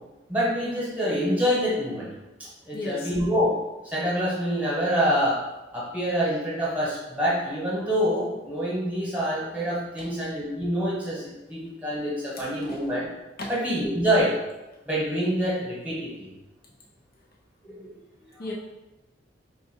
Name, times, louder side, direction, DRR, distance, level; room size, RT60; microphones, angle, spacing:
voice 1, 0.3-2.1 2.6-3.5 3.8-5.4 5.7-11.2 11.5-13.1 13.5-14.3 14.9-16.3 17.6-17.9 18.4-18.5, equal, 10° right, -7 dB, 1.2 m, -26 dB
voice 2, 2.7-3.1 10.0-10.1 12.4-12.8 13.4-13.5 18.4-18.5, left 2 dB, 50° left, -3 dB, 0.6 m, -35 dB
4.2 x 2.3 x 4.4 m, 1.0 s
head